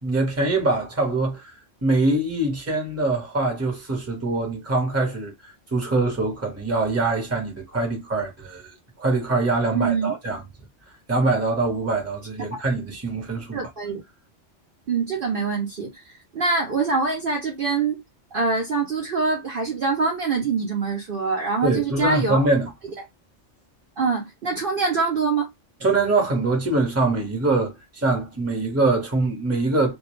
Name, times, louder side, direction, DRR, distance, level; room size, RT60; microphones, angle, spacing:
voice 1, 0.0-1.4 1.8-5.3 5.7-10.4 11.1-13.7 21.6-22.7 25.8-29.9, right 2 dB, 15° right, 0.8 m, -23 dB
voice 2, 9.7-10.1 13.5-14.0 14.9-16.0 16.3-18.0 18.3-22.5 24.0-25.5, right 4 dB, 55° right, 0.7 m, -24 dB
2.3 x 2.2 x 3.0 m
omnidirectional pair, 1.2 m